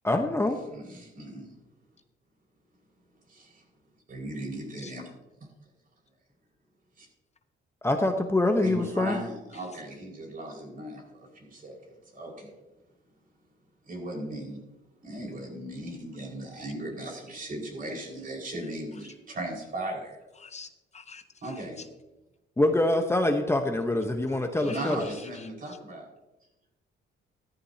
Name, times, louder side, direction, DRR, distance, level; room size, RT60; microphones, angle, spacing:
voice 1, 0.0-0.6 7.8-9.2 22.6-25.1, left 2 dB, 15° left, 5 dB, 1.0 m, -25 dB
voice 2, 0.7-1.5 3.3-3.6 4.1-5.1 7.0-7.1 8.6-11.8 12.1-12.5 13.8-14.6 15.0-20.2 21.4-21.8 24.5-26.0, right 1 dB, 45° right, -1 dB, 5.1 m, -37 dB
voice 3, 20.4-21.8 24.6-25.5, left 5 dB, 35° left, 10 dB, 0.6 m, -47 dB
14.0 x 14.0 x 2.8 m, 1.0 s
cardioid pair, 90°, 20 cm